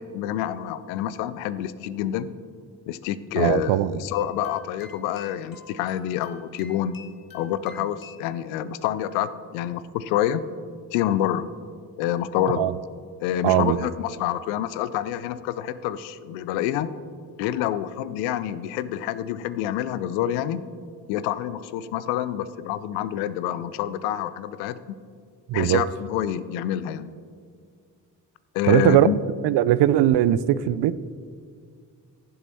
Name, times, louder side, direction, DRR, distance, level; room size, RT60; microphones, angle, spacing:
voice 1, 0.0-2.3 2.9-7.0 7.3-10.4 10.9-11.5 12.0-12.7 13.2-16.9 17.4-20.6 21.1-24.8 25.5-27.1 28.5-29.2, left 11 dB, 80° left, 15 dB, 0.6 m, -27 dB
voice 2, 3.4-4.0 12.6-12.7 13.4-13.8 25.5-25.9 28.7-29.1 29.4-31.0, right 13 dB, 60° right, 17 dB, 0.6 m, -19 dB
sound 1, 4.1-8.3, left 5 dB, 45° left, 1.8 m, -49 dB
15.0 x 7.5 x 4.1 m, 2.1 s
hypercardioid pair, 40°, 47 cm